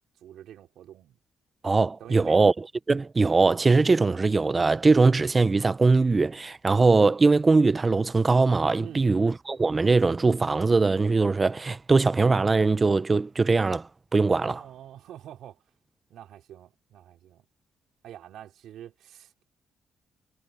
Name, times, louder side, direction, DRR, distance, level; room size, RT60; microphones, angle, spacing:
voice 1, 0.2-1.2 2.0-2.5 8.8-9.1 14.3-15.6 16.1-17.4 18.0-19.4, right 11 dB, 75° right, 4.4 m, -46 dB
voice 2, 1.6-2.5 2.9-14.6, right 3 dB, 25° right, 0.8 m, -21 dB
cardioid pair, 90°, 0 cm